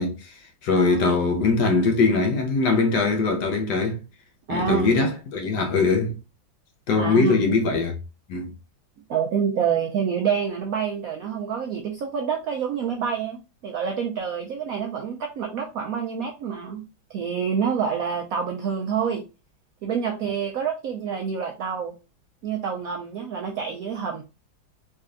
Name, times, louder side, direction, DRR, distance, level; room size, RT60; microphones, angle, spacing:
voice 1, 0.0-4.0 4.5-6.1 6.9-7.9 8.3-8.5, left 4 dB, 65° left, 1.3 m, -22 dB
voice 2, 0.7-1.1 4.5-4.9 7.0-7.5 9.1-16.8 17.1-19.2 19.8-21.9 22.4-24.2, right 7 dB, 80° right, 0.8 m, -27 dB
3.7 x 3.3 x 2.5 m
omnidirectional pair, 2.1 m